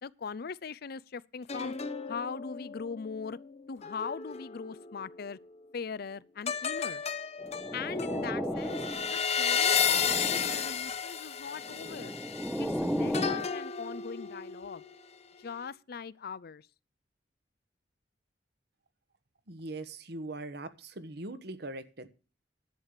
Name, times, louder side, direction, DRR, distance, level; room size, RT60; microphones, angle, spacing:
voice 1, 0.0-1.7 2.1-3.4 3.7-5.4 5.7-7.0 7.7-8.8 9.1-12.1 12.6-14.8 15.4-16.6, left 5 dB, 60° left, 0.5 m, -40 dB
sound 1, 1.5-5.1 6.5-15.0 15.4-15.7, left 7 dB, 40° left, 1.0 m, -33 dB
sound 2, 7.4-9.2 9.6-10.7 11.6-13.5, equal, ahead, 0.7 m, -35 dB
voice 2, 19.5-22.1, right 2 dB, 65° right, 1.3 m, -41 dB
11.0 x 8.9 x 6.6 m
head